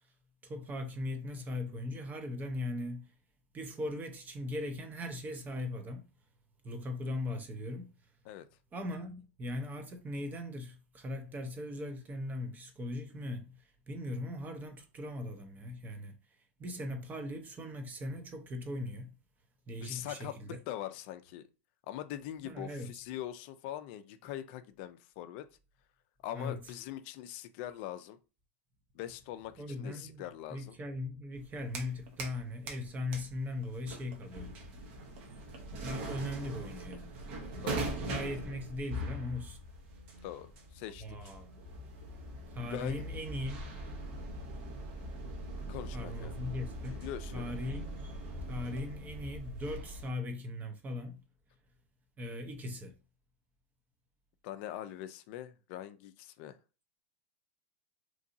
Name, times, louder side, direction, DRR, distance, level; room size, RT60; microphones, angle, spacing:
voice 1, 0.4-3.1 3.5-6.1 6.6-7.9 8.7-16.2 16.6-19.2 19.7-20.6 22.4-22.9 26.3-26.7 29.6-34.5 35.8-37.2 38.0-39.6 41.0-41.5 42.5-43.6 45.9-47.1 47.3-48.1 48.5-51.2 52.2-52.9, left 1 dB, 25° right, 0.7 m, -39 dB
voice 2, 19.8-21.5 21.9-25.5 26.2-28.2 28.9-30.7 37.6-37.9 40.2-41.2 42.6-43.0 45.7-46.3 46.9-47.5 54.4-56.6, left 12 dB, 55° left, 0.4 m, -42 dB
sound 1, 31.3-32.4 32.7-50.1, right 1 dB, 60° right, 0.9 m, -42 dB
3.0 x 2.7 x 2.6 m
hypercardioid pair, 115°, 7 cm